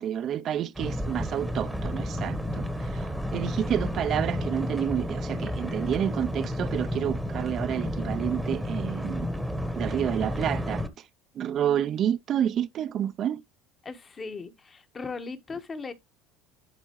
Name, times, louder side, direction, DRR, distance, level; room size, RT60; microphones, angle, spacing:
voice 1, 0.0-9.3 9.7-10.8 11.3-13.4, right 10 dB, 50° right, 0.6 m, -29 dB
sound 1, 0.7-10.9, equal, ahead, 1.1 m, -31 dB
voice 2, 13.8-15.9, left 4 dB, 25° left, 1.2 m, -38 dB
10.5 x 4.1 x 3.1 m
supercardioid pair, 105°, 0 cm